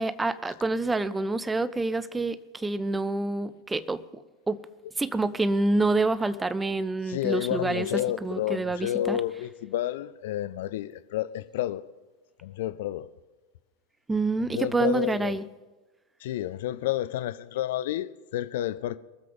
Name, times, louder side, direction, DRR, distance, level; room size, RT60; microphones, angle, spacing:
voice 1, 0.0-4.6 5.0-9.2 14.1-15.4, right 2 dB, 10° right, 0.5 m, -27 dB
voice 2, 7.0-11.8 12.4-13.1 14.5-15.4 16.2-19.0, left 12 dB, 55° left, 0.5 m, -30 dB
22.0 x 7.6 x 5.3 m
figure-of-eight pair, 90°, 0 cm